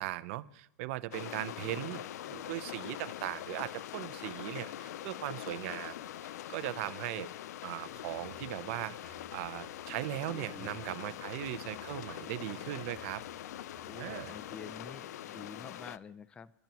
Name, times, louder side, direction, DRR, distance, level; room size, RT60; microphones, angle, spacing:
voice 1, 0.0-7.3 7.6-13.2 13.9-14.4, right 17 dB, 50° right, 14 dB, 0.6 m, -39 dB
sound 1, 1.1-16.0, left 12 dB, 80° left, 0.4 m, -43 dB
sound 2, 7.8-14.9, left 1 dB, 65° left, 4.1 m, -57 dB
voice 2, 10.3-11.2 13.8-16.5, left 5 dB, 10° left, 16 dB, 0.4 m, -48 dB
29.5 x 10.5 x 3.0 m, 0.79 s
supercardioid pair, 150°, 9 cm